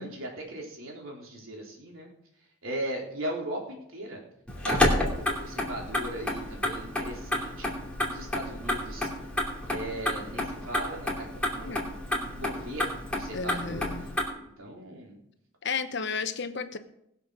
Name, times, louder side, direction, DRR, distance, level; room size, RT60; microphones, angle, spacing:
voice 1, 0.0-2.1 2.6-4.2 4.7-7.7 8.1-9.1 9.7-14.1 14.6-15.2, right 1 dB, 70° right, 0 dB, 3.7 m, -38 dB
Motor vehicle (road), 4.5-14.3, left 1 dB, 5° left, 2.9 m, -30 dB
voice 2, 13.3-14.1 15.6-16.8, left 5 dB, 55° left, 9 dB, 1.0 m, -33 dB
20.0 x 7.0 x 6.3 m, 0.77 s
head